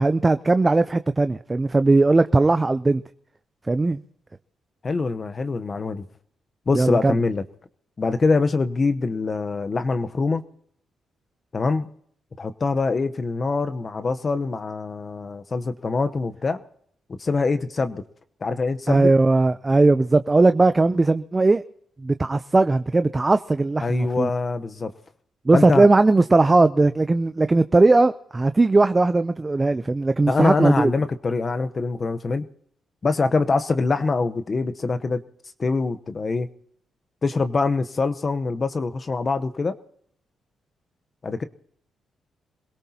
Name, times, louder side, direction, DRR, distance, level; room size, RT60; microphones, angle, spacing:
voice 1, 0.0-3.0 3.7-4.0 6.7-7.2 18.9-21.6 22.0-24.3 25.5-30.9, right 3 dB, 25° right, 11 dB, 0.5 m, -18 dB
voice 2, 4.8-6.1 6.7-7.4 8.0-10.4 11.5-11.9 12.4-16.6 17.1-18.0 18.4-19.1 23.8-24.9 25.5-25.9 30.3-32.4 33.0-35.2 35.6-36.5 37.2-39.7 41.2-41.4, left 4 dB, 40° left, 9 dB, 0.9 m, -24 dB
26.5 x 17.5 x 2.9 m, 0.67 s
cardioid pair, 80°, 0 cm